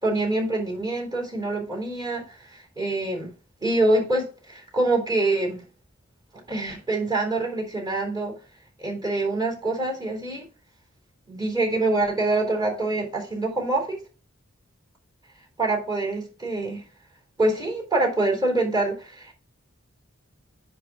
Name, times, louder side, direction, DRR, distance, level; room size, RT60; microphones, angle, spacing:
voice 1, 0.0-3.3 3.6-5.6 6.5-8.4 8.8-10.4 11.3-14.0 15.6-16.8 17.4-19.3, right 2 dB, 20° right, 3.8 m, -25 dB
9.8 x 3.8 x 5.9 m
head